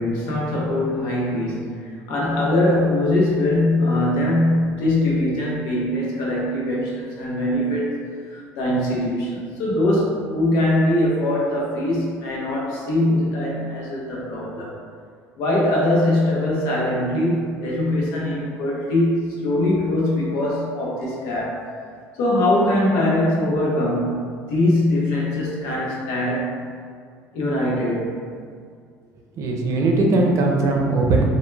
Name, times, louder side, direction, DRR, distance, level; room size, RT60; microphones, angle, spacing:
voice 1, 0.0-7.9 8.2-14.8 15.4-21.6 22.1-24.2 24.5-26.5 27.3-28.1, left 1 dB, 80° left, -4 dB, 0.7 m, -22 dB
voice 2, 29.4-31.3, right 2 dB, 55° right, 0 dB, 0.5 m, -19 dB
2.1 x 2.1 x 3.1 m, 2.1 s
supercardioid pair, 85°, 6 cm